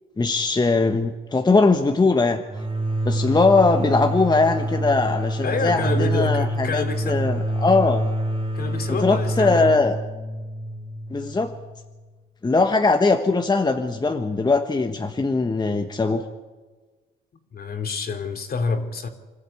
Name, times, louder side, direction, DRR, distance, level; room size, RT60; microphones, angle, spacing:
voice 1, 0.2-2.4 3.0-8.1 9.0-10.0 11.1-11.5 12.4-16.2, left 3 dB, 20° left, 1.3 m, -20 dB
sound 1, 2.5-12.0, right 1 dB, 25° right, 3.7 m, -26 dB
voice 2, 5.4-7.3 8.5-9.7 17.5-19.1, left 4 dB, 50° left, 2.7 m, -28 dB
26.0 x 13.0 x 8.5 m
cardioid pair, 90°, 20 cm